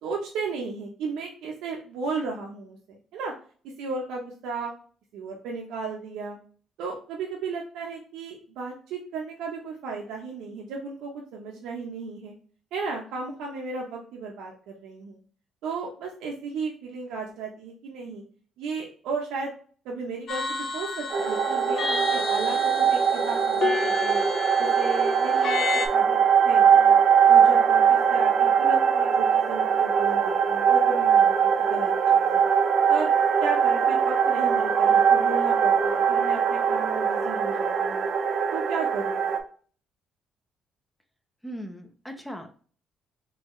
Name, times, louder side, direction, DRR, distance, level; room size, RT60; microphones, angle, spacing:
voice 1, 0.0-3.3 3.8-4.7 5.1-6.4 6.8-12.3 12.7-15.2 15.6-18.2 18.6-19.5 19.8-24.2 24.6-26.2 26.4-26.9 27.3-32.4 32.9-33.1 33.4-38.0 38.5-39.3, right 4 dB, 90° right, -1 dB, 0.8 m, -34 dB
sound 1, 20.3-25.9, left 4 dB, 50° left, 0.7 m, -31 dB
sound 2, 21.1-39.4, right 7 dB, 55° right, 0.6 m, -21 dB
voice 2, 41.4-42.5, equal, 5° left, 5 dB, 0.6 m, -38 dB
4.0 x 3.0 x 3.1 m, 0.42 s
cardioid pair, 120°, 0 cm